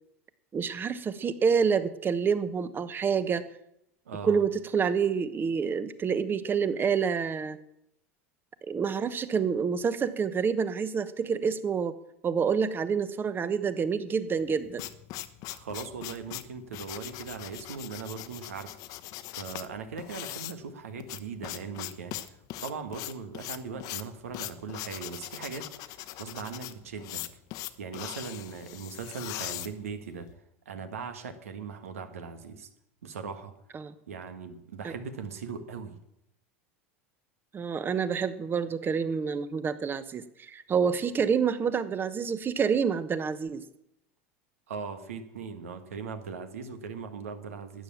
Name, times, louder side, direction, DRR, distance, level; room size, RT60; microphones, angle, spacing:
voice 1, 0.5-3.5 4.2-7.6 8.7-12.0 12.2-14.8 33.7-33.9 34.8-34.9 37.5-43.6, right 6 dB, 30° right, 13 dB, 1.1 m, -28 dB
voice 2, 4.1-4.4 15.5-18.8 19.3-22.2 22.6-27.2 27.8-30.3 30.7-32.7 33.0-33.5 34.1-36.0 44.7-47.8, right 5 dB, 80° right, 8 dB, 1.6 m, -39 dB
sound 1, 14.4-30.3, left 15 dB, 55° left, 1.0 m, -40 dB
13.0 x 9.3 x 7.3 m, 0.79 s
hypercardioid pair, 85°, 7 cm